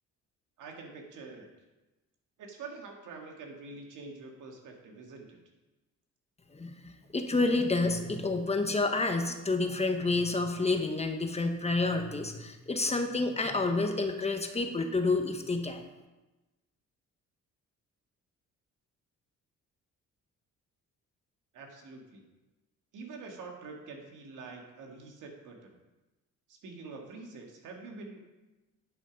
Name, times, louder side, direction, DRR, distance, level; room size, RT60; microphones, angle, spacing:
voice 1, 0.6-1.5 2.4-5.4 21.5-22.2 22.9-25.8 26.5-28.4, right 3 dB, 85° right, 2 dB, 1.8 m, -46 dB
voice 2, 7.1-15.8, left 3 dB, 20° left, 5 dB, 1.1 m, -29 dB
10.5 x 6.2 x 5.2 m, 1.1 s
cardioid pair, 90°, 30 cm